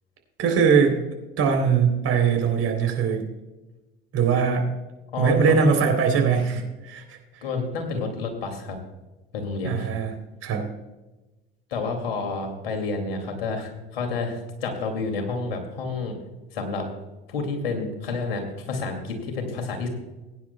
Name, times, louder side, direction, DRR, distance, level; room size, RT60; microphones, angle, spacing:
voice 1, 0.4-1.0 1.4-3.2 4.1-4.7 5.2-7.2 9.6-10.1 10.4-10.6, right 6 dB, 55° right, 3 dB, 3.4 m, -21 dB
voice 2, 5.1-5.6 7.4-8.8 9.3-9.9 11.7-16.2 16.5-16.9 17.3-19.9, left 4 dB, 85° left, 4 dB, 2.4 m, -29 dB
21.0 x 9.8 x 2.2 m, 1.1 s
hypercardioid pair, 65°, 29 cm